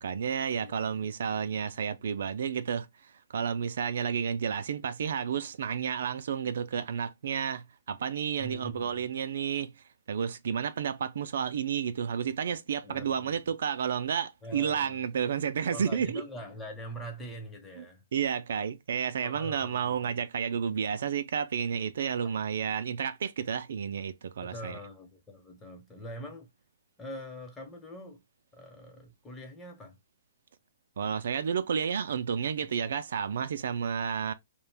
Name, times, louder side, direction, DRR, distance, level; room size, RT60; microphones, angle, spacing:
voice 1, 0.0-16.2 17.8-17.9 18.1-24.8 31.0-34.3, right 7 dB, 70° right, 0.3 m, -31 dB
voice 2, 8.4-9.1 12.8-13.4 14.4-15.0 15.7-18.0 19.2-20.0 22.2-22.3 24.4-26.5 27.0-28.2 28.5-30.0, equal, 10° left, 0.8 m, -43 dB
2.4 x 2.2 x 3.3 m
hypercardioid pair, 140°, 0 cm